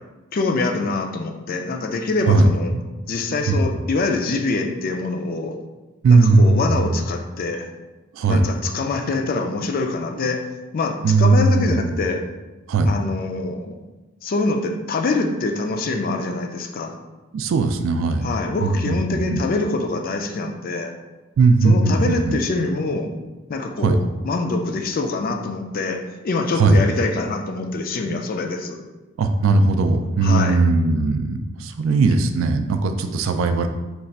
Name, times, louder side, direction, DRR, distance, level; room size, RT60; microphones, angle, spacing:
voice 1, 0.3-2.7 3.1-5.6 6.1-7.7 8.3-10.5 10.7-12.2 12.8-13.8 14.2-16.9 18.2-20.9 21.6-23.1 23.5-24.0 24.2-28.8 30.2-30.6, left 3 dB, 40° left, 4 dB, 0.3 m, -24 dB
voice 2, 6.0-6.8 8.2-8.4 11.0-11.8 12.7-12.9 17.3-18.3 18.6-19.4 21.4-22.4 23.8-24.0 26.6-26.8 28.1-28.2 29.2-33.7, right 3 dB, 65° right, 8 dB, 0.3 m, -18 dB
3.3 x 2.4 x 4.0 m, 1.1 s
head